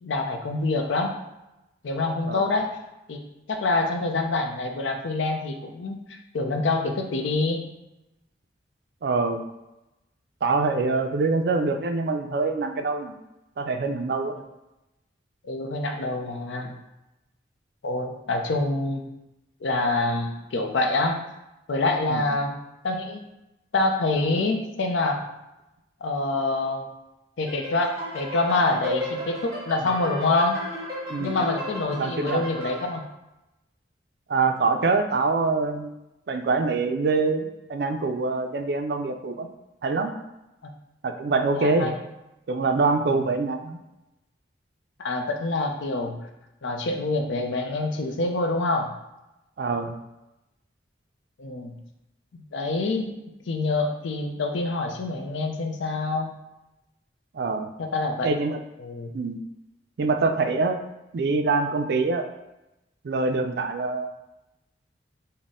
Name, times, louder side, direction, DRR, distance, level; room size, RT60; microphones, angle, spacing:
voice 1, 0.0-1.2 1.8-2.7 3.1-3.2 3.5-7.6 15.4-16.7 17.8-19.0 19.6-21.2 21.7-22.5 22.8-23.2 23.7-25.2 26.0-26.8 27.4-30.6 31.2-33.0 41.5-41.9 45.0-46.2 46.6-48.9 51.4-51.8 52.3-53.1 53.5-56.3 57.8-58.3 58.8-59.1, left 2 dB, 85° left, 4 dB, 0.5 m, -26 dB
voice 2, 9.0-9.4 10.4-13.1 13.6-14.3 22.1-22.2 31.1-31.4 31.9-32.4 34.3-36.0 36.3-39.5 39.8-40.1 41.0-41.9 42.5-43.8 49.6-49.9 57.3-57.7 58.2-58.6 59.1-59.4 60.0-60.8 61.1-62.3 63.0-64.1, right 3 dB, 60° right, 6 dB, 0.3 m, -24 dB
sound 1, 27.5-33.0, left 1 dB, 15° right, 1.1 m, -34 dB
4.0 x 2.1 x 3.6 m, 0.95 s
head